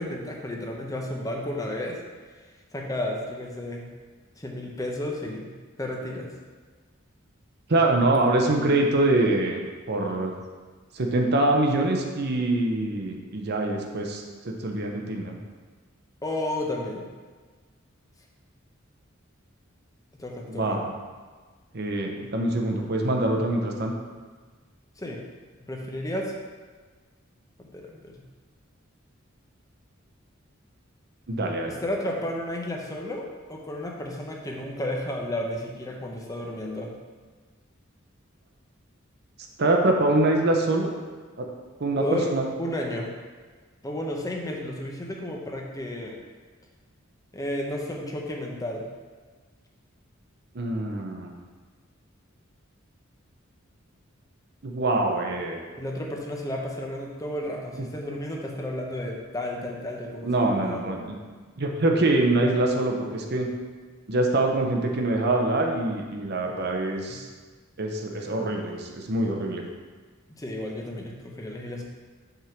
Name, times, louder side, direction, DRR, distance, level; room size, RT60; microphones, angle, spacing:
voice 1, 0.0-2.0 2.7-3.9 4.4-5.5 5.8-6.3 16.2-17.1 20.1-20.8 25.0-25.2 25.6-26.3 27.6-28.1 31.7-36.9 42.0-43.1 43.8-46.2 47.3-48.9 55.7-60.8 67.1-67.2 70.4-71.8, left 1 dB, 15° left, 0 dB, 0.7 m, -32 dB
voice 2, 7.7-9.6 9.9-10.3 10.9-15.4 20.5-20.9 21.7-23.9 31.3-31.8 39.6-40.9 41.4-41.5 41.8-42.0 42.3-42.4 50.5-51.4 54.6-55.6 60.2-61.2 61.6-63.5 64.1-67.3 67.8-69.6, right 2 dB, 55° right, 2 dB, 0.8 m, -24 dB
5.7 x 3.7 x 5.8 m, 1.4 s
head